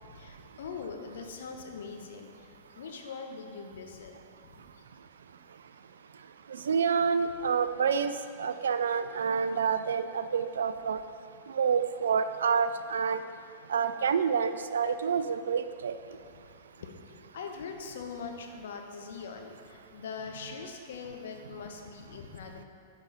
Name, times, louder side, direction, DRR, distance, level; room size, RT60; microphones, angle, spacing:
voice 1, 0.0-4.1 4.4-4.6 16.8-16.9 17.3-22.6, left 5 dB, 65° left, 4 dB, 0.8 m, -42 dB
voice 2, 6.5-8.1 8.4-11.0 11.5-13.2 13.7-16.0, right 6 dB, 70° right, 11 dB, 0.3 m, -28 dB
9.5 x 5.2 x 3.8 m, 2.3 s
figure-of-eight pair, 100°, 0 cm